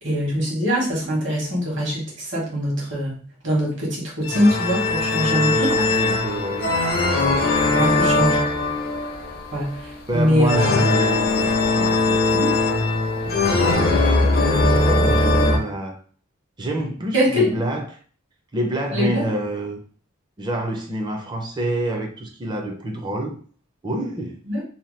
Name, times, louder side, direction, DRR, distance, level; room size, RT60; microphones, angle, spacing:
voice 1, 0.0-3.1 3.4-5.7 7.7-8.4 9.5-10.8 17.1-17.4 18.9-19.3 24.5-24.6, equal, 65° right, -3 dB, 1.2 m, -22 dB
sound 1, 4.2-15.6, left 2 dB, 50° left, 0.5 m, -20 dB
voice 2, 5.2-6.8 7.6-8.4 10.1-12.6 13.2-14.1 14.6-16.0 16.6-17.9 18.5-19.8 20.4-23.4 23.8-24.4, right 1 dB, 20° right, 3 dB, 0.5 m, -28 dB
2.8 x 2.2 x 3.2 m, 0.43 s
head